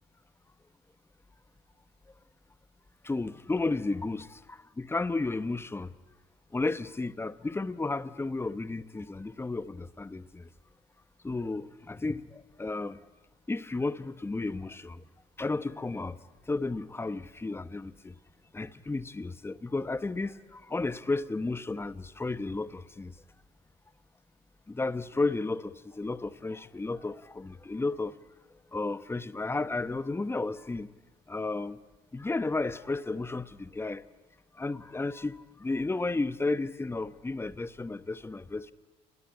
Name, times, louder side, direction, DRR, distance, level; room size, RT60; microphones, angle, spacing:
voice 1, 3.0-5.9 6.5-10.5 11.2-13.0 13.5-15.0 15.4-16.2 16.5-18.1 18.5-23.1 24.7-28.1 28.7-30.9 31.3-31.8 32.1-34.0 34.5-38.7, left 3 dB, 15° left, 15 dB, 1.0 m, -33 dB
28.5 x 20.5 x 9.9 m, 1.2 s
cardioid pair, 110°, 17 cm